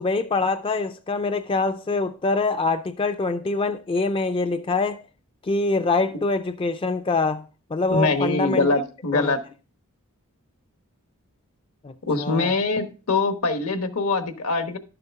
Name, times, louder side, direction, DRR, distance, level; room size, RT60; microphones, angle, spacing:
voice 1, 0.0-5.0 5.4-7.4 7.7-8.8 9.1-9.4 11.8-11.9 12.2-12.5, left 3 dB, 25° left, 0.4 m, -24 dB
voice 2, 7.9-9.4 12.0-14.8, left 3 dB, 70° left, 1.2 m, -23 dB
11.5 x 6.8 x 3.5 m
head